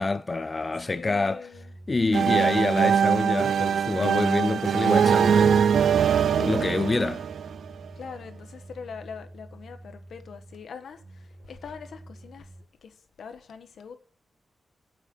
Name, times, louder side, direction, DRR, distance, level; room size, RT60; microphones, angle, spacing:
voice 1, 0.0-1.4 1.9-5.7 6.3-7.2, left 3 dB, 25° left, 0.5 m, -27 dB
voice 2, 0.9-1.8 7.9-12.5 12.8-14.0, left 6 dB, 90° left, 1.3 m, -43 dB
sound 1, 1.5-12.6, right 1 dB, 45° right, 1.4 m, -49 dB
sound 2, 2.1-7.9, right 7 dB, 80° right, 0.4 m, -22 dB
9.2 x 7.3 x 6.2 m
wide cardioid pair, 180°, 0 cm